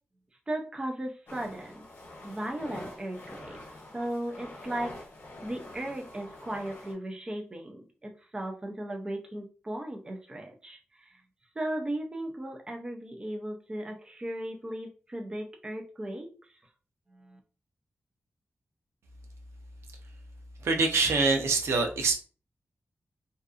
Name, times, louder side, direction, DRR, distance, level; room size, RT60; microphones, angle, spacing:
voice 1, 0.5-1.9 2.2-3.6 3.9-5.0 5.4-11.1 11.6-16.3 17.1-17.4, right 1 dB, 20° right, 2 dB, 0.4 m, -36 dB
sound 1, 1.3-6.9, left 1 dB, 55° left, 0.7 m, -46 dB
voice 2, 20.6-22.1, right 3 dB, 90° right, 3 dB, 0.6 m, -24 dB
2.6 x 2.3 x 2.4 m, 0.36 s
wide cardioid pair, 140°, 4 cm